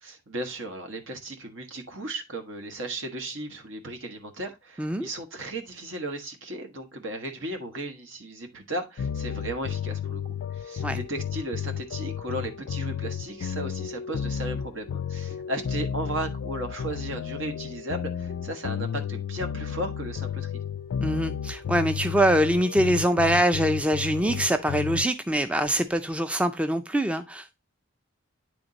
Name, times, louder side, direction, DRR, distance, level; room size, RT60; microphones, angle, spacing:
voice 1, 0.0-20.5, right 1 dB, 75° right, 1.4 m, -35 dB
voice 2, 4.8-5.1 10.8-11.0 21.0-27.5, right 1 dB, 5° right, 0.3 m, -24 dB
sound 1, 9.0-25.1, left 8 dB, 80° left, 0.3 m, -33 dB
9.2 x 3.5 x 3.9 m
head